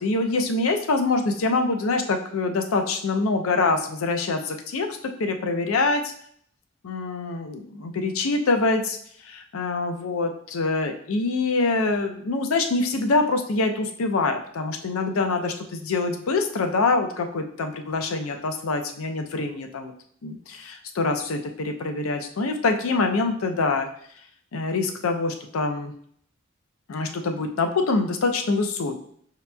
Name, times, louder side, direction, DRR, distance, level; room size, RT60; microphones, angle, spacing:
voice 1, 0.0-6.1 6.8-9.0 9.2-19.9 20.2-23.9 24.5-25.9 26.9-29.0, left 3 dB, 85° left, 5 dB, 0.5 m, -25 dB
5.8 x 2.8 x 2.2 m, 0.64 s
head